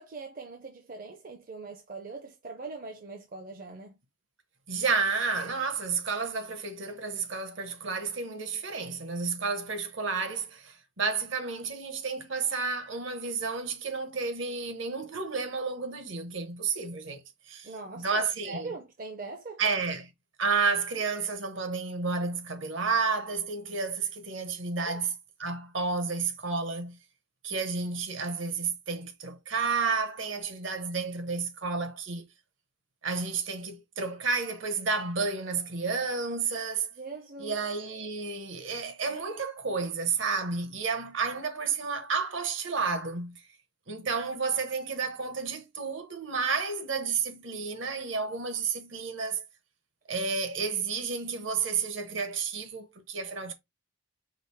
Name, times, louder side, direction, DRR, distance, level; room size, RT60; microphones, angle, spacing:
voice 1, 0.0-4.0 17.6-19.6 24.8-25.0 36.9-37.6, right 3 dB, 40° right, 0.6 m, -41 dB
voice 2, 4.7-17.7 18.0-18.7 19.6-20.1 20.4-25.1 25.4-27.0 27.4-32.3 33.0-36.9 37.4-43.4 43.9-49.4 50.1-53.5, right 4 dB, 60° right, 0.9 m, -31 dB
4.9 x 2.0 x 4.4 m
head